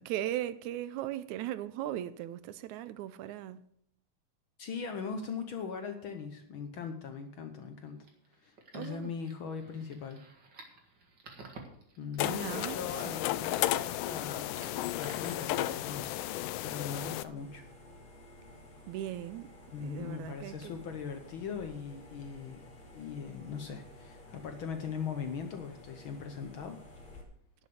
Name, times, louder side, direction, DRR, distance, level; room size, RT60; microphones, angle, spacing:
voice 1, 0.0-3.6 8.7-9.1 12.2-12.8 18.9-19.5 19.8-20.7, right 13 dB, 80° right, 1.9 m, -38 dB
voice 2, 4.6-8.0 8.4-10.2 12.0-17.6 19.7-22.6 22.9-26.8, left 6 dB, 75° left, 1.1 m, -40 dB
sound 1, 7.9-16.4, right 3 dB, 40° right, 2.2 m, -55 dB
sound 2, 12.2-17.2, left 14 dB, 90° left, 2.2 m, -33 dB
sound 3, 17.4-27.2, left 2 dB, 40° left, 3.3 m, -53 dB
11.0 x 7.3 x 7.7 m
omnidirectional pair, 3.6 m